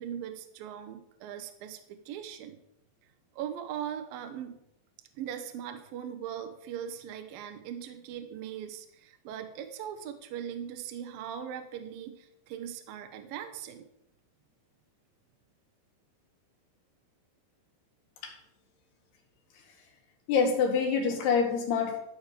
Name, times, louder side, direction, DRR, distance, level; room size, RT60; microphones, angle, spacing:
voice 1, 0.0-2.6 3.3-4.6 5.2-13.9, right 9 dB, 75° right, 6 dB, 2.1 m, -40 dB
voice 2, 20.3-22.0, left 5 dB, 65° left, 2 dB, 3.6 m, -26 dB
13.5 x 4.9 x 6.8 m, 0.79 s
omnidirectional pair, 5.3 m